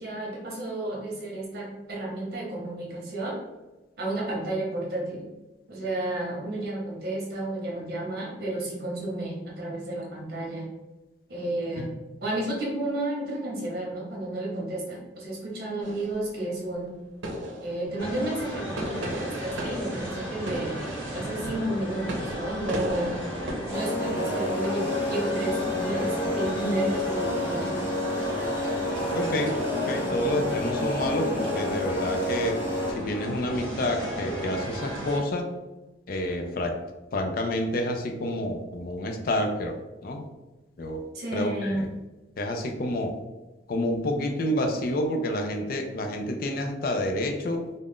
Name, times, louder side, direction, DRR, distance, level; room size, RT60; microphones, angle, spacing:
voice 1, 0.0-3.4 4.0-5.2 5.7-10.7 11.3-11.9 12.2-17.0 17.6-20.8 21.1-23.2 23.7-27.8 41.1-41.9, right 1 dB, 55° right, -3 dB, 0.9 m, -32 dB
sound 1, 15.8-16.6 17.2-18.3 18.7-23.5, right 1 dB, 85° right, 0.6 m, -36 dB
sound 2, 18.0-35.2, equal, 10° left, 1.1 m, -35 dB
sound 3, 23.7-32.9, left 2 dB, 10° right, 0.5 m, -29 dB
voice 2, 29.1-35.5 36.1-36.8 37.1-40.2 40.8-41.0 41.3-41.9 42.4-43.2 43.7-47.7, left 1 dB, 50° left, 4 dB, 0.4 m, -29 dB
2.4 x 2.1 x 3.5 m, 1.1 s
head